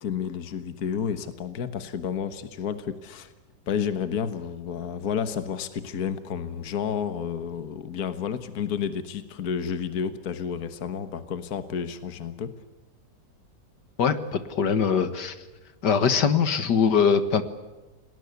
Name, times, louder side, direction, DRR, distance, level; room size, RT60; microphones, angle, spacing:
voice 1, 0.0-3.3 3.7-12.5, left 7 dB, 60° left, 10 dB, 1.7 m, -31 dB
voice 2, 14.0-15.4 15.8-17.4, left 6 dB, 75° left, 11 dB, 2.1 m, -22 dB
29.5 x 19.5 x 8.2 m, 1.2 s
omnidirectional pair, 1.8 m